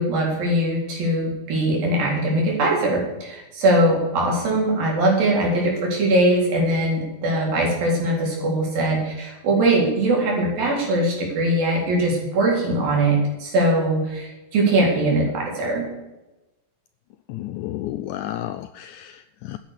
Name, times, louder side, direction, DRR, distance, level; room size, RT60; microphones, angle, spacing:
voice 1, 0.0-15.9, right 1 dB, 80° right, -2 dB, 5.8 m, -21 dB
voice 2, 17.3-19.6, left 13 dB, 85° left, 12 dB, 1.8 m, -32 dB
13.5 x 9.1 x 6.8 m, 1.0 s
omnidirectional pair, 4.1 m